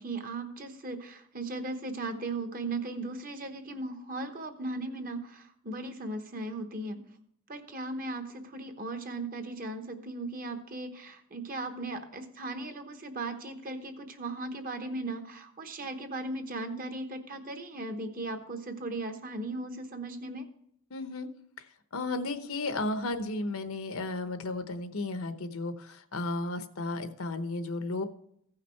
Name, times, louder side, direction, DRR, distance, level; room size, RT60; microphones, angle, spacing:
voice 1, 0.0-7.0 7.5-20.5, right 2 dB, 40° right, 7 dB, 1.0 m, -37 dB
voice 2, 20.9-21.3 21.9-28.0, left 2 dB, 75° left, 9 dB, 0.9 m, -34 dB
15.5 x 5.8 x 4.5 m, 0.72 s
head